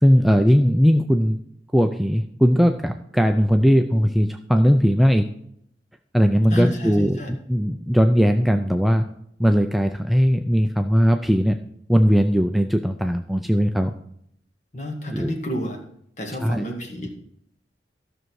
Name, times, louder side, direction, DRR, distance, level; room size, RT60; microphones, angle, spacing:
voice 1, 0.0-1.4 1.7-5.3 6.1-9.0 9.4-11.6 11.9-13.9 15.1-15.3 16.4-16.7, equal, ahead, 5 dB, 0.4 m, -19 dB
voice 2, 6.5-6.9 7.2-7.3 14.7-15.8 16.2-17.1, equal, 40° left, 2 dB, 1.9 m, -29 dB
13.5 x 6.4 x 4.7 m, 0.70 s
head